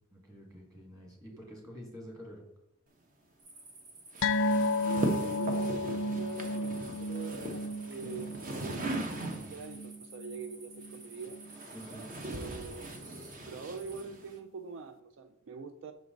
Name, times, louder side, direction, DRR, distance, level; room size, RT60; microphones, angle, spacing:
voice 1, 0.1-2.4 7.9-8.2 11.7-12.1, equal, 20° right, 0 dB, 1.8 m, -48 dB
sound 1, 3.4-14.0, right 3 dB, 90° right, 1.7 m, -54 dB
sound 2, 4.1-9.8 10.8-14.4, right 1 dB, 40° right, 0.8 m, -40 dB
sound 3, 4.2-11.0 11.3-11.5 11.9-12.0, left 1 dB, 70° left, 0.4 m, -33 dB
voice 2, 4.8-11.4 12.2-12.9 13.5-15.9, right 4 dB, 65° right, 9 dB, 0.4 m, -43 dB
6.0 x 4.8 x 3.8 m, 0.77 s
head